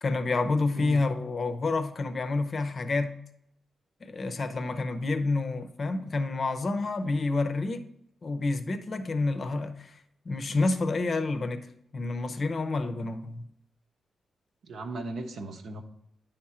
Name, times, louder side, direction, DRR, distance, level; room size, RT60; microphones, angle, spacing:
voice 1, 0.0-3.2 4.0-7.8 8.2-10.0 10.3-13.4, left 3 dB, 40° left, 0.6 m, -29 dB
voice 2, 14.6-15.8, right 2 dB, 70° right, 0.9 m, -37 dB
10.0 x 3.6 x 4.3 m
cardioid pair, 125°, 0 cm